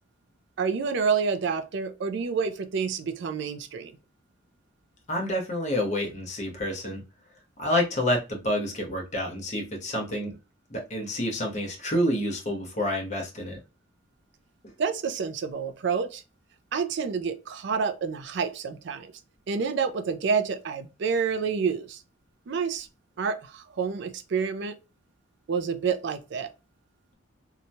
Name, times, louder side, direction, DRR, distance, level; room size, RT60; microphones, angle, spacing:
voice 1, 0.6-3.9 14.8-16.2 16.7-19.1 19.5-22.0 22.5-22.9 23.2-24.8 25.5-26.5, right 5 dB, 60° right, 0.4 m, -28 dB
voice 2, 5.1-7.0 7.6-10.4 10.7-13.6, left 1 dB, 35° left, 0.9 m, -28 dB
2.8 x 2.2 x 2.6 m
head